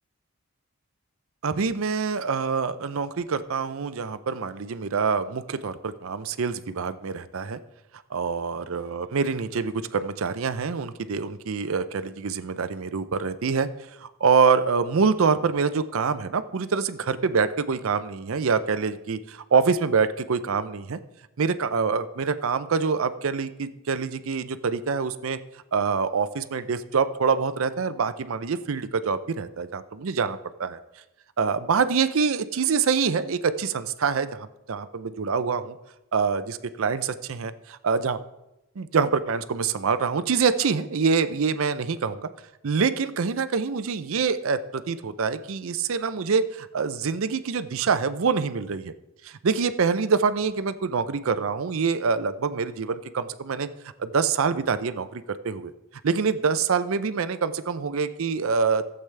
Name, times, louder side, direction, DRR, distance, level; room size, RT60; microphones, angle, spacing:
voice 1, 1.4-7.6 8.1-13.7 14.0-21.0 21.4-25.4 25.7-30.8 31.4-35.8 36.1-38.2 38.8-42.3 42.6-48.9 49.2-53.7 54.0-55.7 56.0-58.9, right 5 dB, 75° right, 12 dB, 0.5 m, -25 dB
15.5 x 7.9 x 3.3 m, 0.92 s
head